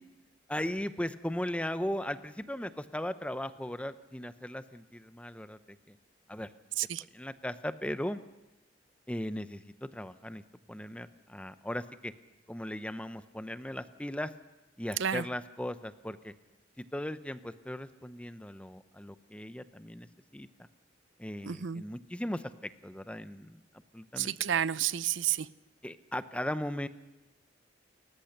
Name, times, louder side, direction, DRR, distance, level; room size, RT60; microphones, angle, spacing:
voice 1, 0.5-5.6 5.9-6.0 6.3-6.5 7.1-8.2 9.1-10.4 10.7-12.1 12.5-14.3 14.8-16.3 16.8-20.1 20.3-20.7 21.2-23.6 23.9-24.3 25.8-26.9, left 1 dB, 5° left, 12 dB, 0.7 m, -37 dB
voice 2, 21.4-21.8 24.2-25.5, right 9 dB, 80° right, 17 dB, 0.6 m, -30 dB
29.5 x 14.5 x 6.7 m, 1.1 s
head